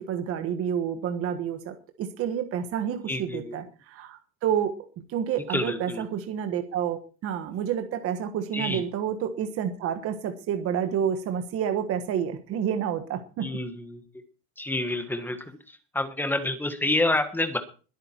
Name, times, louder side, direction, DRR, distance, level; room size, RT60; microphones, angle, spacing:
voice 1, 0.0-4.7 5.1-13.5, right 8 dB, 35° right, 8 dB, 1.4 m, -29 dB
voice 2, 3.1-3.6 5.5-6.0 8.5-8.8 13.4-14.0 14.6-17.6, left 2 dB, 5° left, 8 dB, 1.4 m, -28 dB
21.5 x 8.9 x 4.5 m, 0.36 s
cardioid pair, 170°, 43 cm